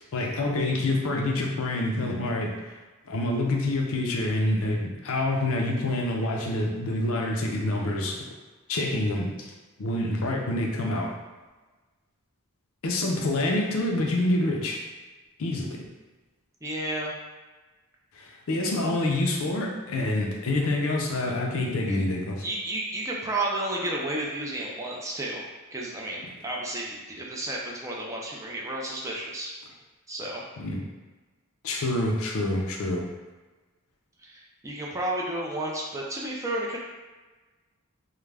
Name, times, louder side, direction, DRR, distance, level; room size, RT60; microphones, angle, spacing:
voice 1, 0.1-2.8 3.1-8.2 8.7-9.5 9.8-11.1 12.8-14.8 15.4-15.8 18.2-22.4 30.6-30.8 31.6-33.0, left 1 dB, 65° left, 0 dB, 0.5 m, -27 dB
voice 2, 16.6-17.1 22.4-29.5 30.1-30.4 34.2-36.8, right 1 dB, 15° right, -3 dB, 0.3 m, -32 dB
2.3 x 2.1 x 3.2 m, 1.3 s
head